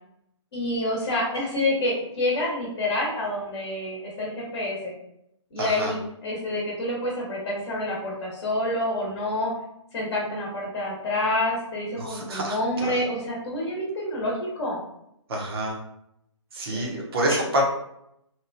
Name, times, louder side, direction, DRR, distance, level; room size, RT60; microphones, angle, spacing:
voice 1, 0.5-4.9 5.5-9.5 9.9-14.8 16.7-17.0 17.3-17.4, left 1 dB, 45° left, -3 dB, 0.9 m, -28 dB
voice 2, 5.6-5.9 12.0-13.0 15.3-15.8 16.5-17.6, right 1 dB, 50° right, -1 dB, 0.9 m, -28 dB
2.9 x 2.2 x 2.5 m, 0.78 s
hypercardioid pair, 150°, 16 cm